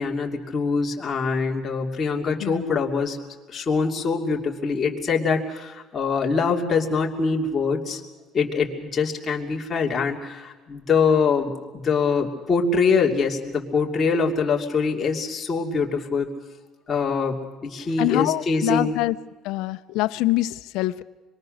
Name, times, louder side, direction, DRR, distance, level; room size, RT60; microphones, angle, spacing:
voice 1, 0.0-3.2 3.5-8.0 8.3-16.3 16.9-17.4 17.6-19.0, left 5 dB, 25° left, 0 dB, 2.8 m, -24 dB
voice 2, 18.0-19.1 19.4-21.0, left 17 dB, 75° left, 13 dB, 0.8 m, -24 dB
26.5 x 22.0 x 6.6 m, 1.3 s
cardioid pair, 150°, 0 cm